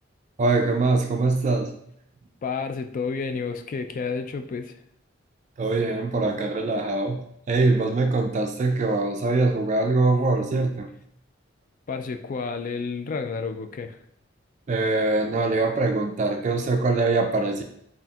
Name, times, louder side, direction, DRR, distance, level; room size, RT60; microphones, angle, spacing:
voice 1, 0.4-1.7 5.6-7.2 7.5-10.9 14.7-17.6, right 3 dB, 40° right, 4 dB, 0.4 m, -23 dB
voice 2, 2.4-4.8 11.9-14.0, left 5 dB, 45° left, 7 dB, 0.3 m, -30 dB
4.2 x 3.6 x 2.3 m, 0.69 s
head